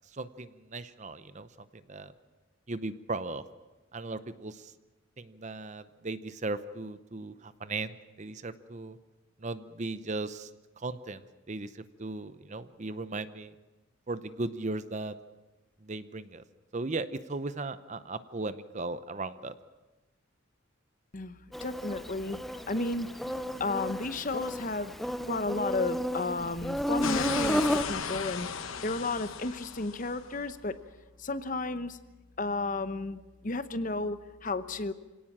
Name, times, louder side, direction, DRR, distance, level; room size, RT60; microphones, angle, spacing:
voice 1, 0.1-2.1 2.7-3.4 3.9-4.7 5.2-9.0 9.4-10.5 10.8-13.5 14.1-15.1 15.8-16.4 16.7-19.5, right 3 dB, 35° right, 13 dB, 0.8 m, -37 dB
voice 2, 21.1-22.4 22.7-23.1 23.6-24.9 25.3-28.5 28.8-30.8 31.2-32.0 32.4-34.9, left 3 dB, 40° left, 12 dB, 0.9 m, -33 dB
Insect, 21.5-27.8, equal, ahead, 0.7 m, -32 dB
sound 1, 27.0-30.2, left 6 dB, 75° left, 1.1 m, -35 dB
26.5 x 17.5 x 7.4 m, 1.1 s
head